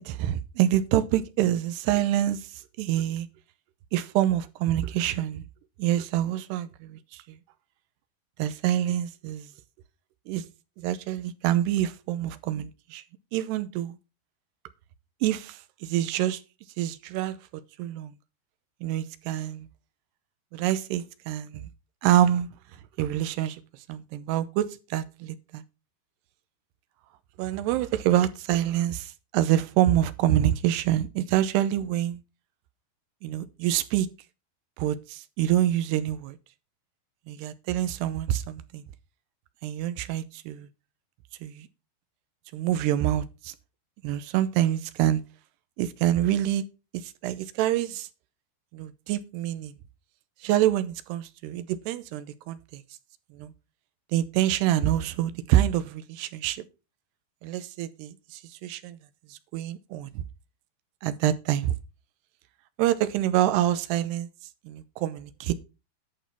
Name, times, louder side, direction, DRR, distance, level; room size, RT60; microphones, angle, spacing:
voice 1, 0.0-2.5 2.8-3.3 3.9-5.4 5.8-7.2 8.4-9.5 10.3-10.5 10.8-13.0 13.3-14.0 15.2-16.4 16.8-17.4 17.8-18.1 18.8-19.7 20.5-21.7 22.0-22.5 23.0-23.6 23.9-25.6 27.4-32.2 33.2-34.1 34.8-36.4 37.3-38.8 39.6-40.7 41.4-41.7 42.5-43.5 44.0-45.2 45.8-46.6 47.0-48.1 48.7-49.7 50.4-52.8 53.3-53.5 54.1-56.7 57.4-59.0 59.3-60.2 61.0-61.7 62.8-64.3 64.7-65.5, right 12 dB, 85° right, 2.8 m, -26 dB
11.0 x 5.2 x 5.6 m
omnidirectional pair, 4.8 m